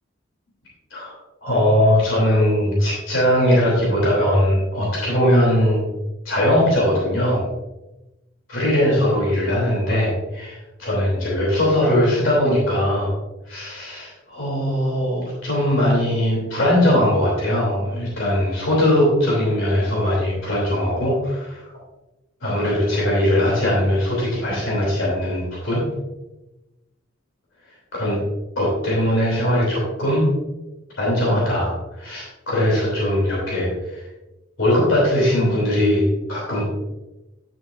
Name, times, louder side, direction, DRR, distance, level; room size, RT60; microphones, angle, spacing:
voice 1, 1.4-5.9 6.2-7.4 8.5-13.1 13.5-21.7 22.4-25.8 27.9-28.2 28.5-30.3 31.0-34.0 34.6-36.6, left 1 dB, 70° left, -5 dB, 3.1 m, -20 dB
10.5 x 7.4 x 2.6 m, 1.0 s
head